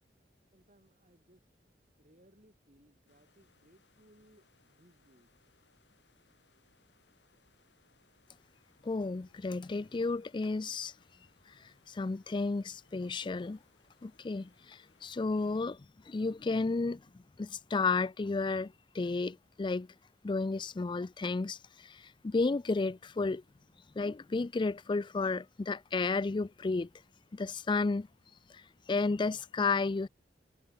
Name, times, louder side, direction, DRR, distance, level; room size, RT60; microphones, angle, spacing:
voice 1, 0.5-1.4 2.0-5.3, right 1 dB, 45° right, 6.6 m, -65 dB
sound 1, 3.1-15.6, left 4 dB, 85° left, 6.9 m, -70 dB
voice 2, 8.8-10.9 11.5-13.6 14.0-15.8 16.1-17.0 17.4-19.9 20.2-23.4 24.0-26.9 27.3-28.1 28.5-30.1, left 3 dB, 25° left, 0.4 m, -32 dB
head